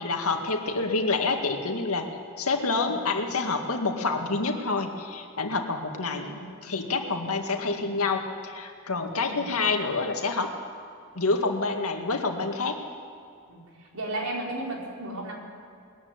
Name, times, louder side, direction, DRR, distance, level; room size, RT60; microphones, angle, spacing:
voice 1, 0.0-6.3 6.6-10.6 11.1-12.8, left 3 dB, 85° left, 4 dB, 2.1 m, -28 dB
voice 2, 7.5-7.8 9.1-9.4 13.5-15.3, right 1 dB, 80° right, -2 dB, 4.6 m, -35 dB
20.5 x 14.0 x 9.7 m, 2.4 s
head